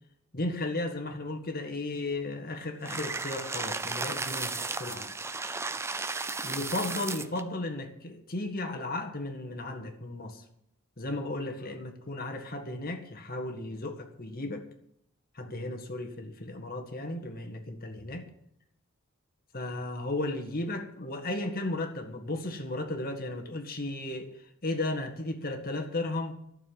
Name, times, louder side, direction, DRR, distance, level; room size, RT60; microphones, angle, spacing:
voice 1, 0.3-5.1 6.4-10.4 11.0-14.7 15.3-18.3 19.5-24.3 24.6-26.4, left 2 dB, 45° left, 5 dB, 1.8 m, -35 dB
sound 1, 2.8-7.4, right 3 dB, 10° right, 0.4 m, -34 dB
12.0 x 6.9 x 9.4 m, 0.74 s
head